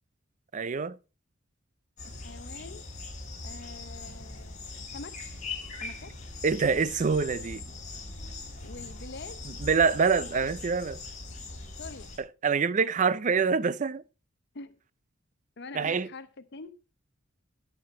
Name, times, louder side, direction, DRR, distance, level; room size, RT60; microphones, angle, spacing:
voice 1, 0.5-1.0 6.4-7.6 9.5-11.0 12.2-14.0 15.7-16.1, right 5 dB, 40° right, 0.5 m, -26 dB
voice 2, 2.0-2.8 3.4-5.2 5.8-6.1 8.6-9.5 10.3-10.6 11.8-12.1 14.5-14.8 15.6-16.7, left 3 dB, 55° left, 0.8 m, -45 dB
sound 1, 2.0-12.2, left 3 dB, 40° left, 4.4 m, -41 dB
11.5 x 9.0 x 4.3 m
head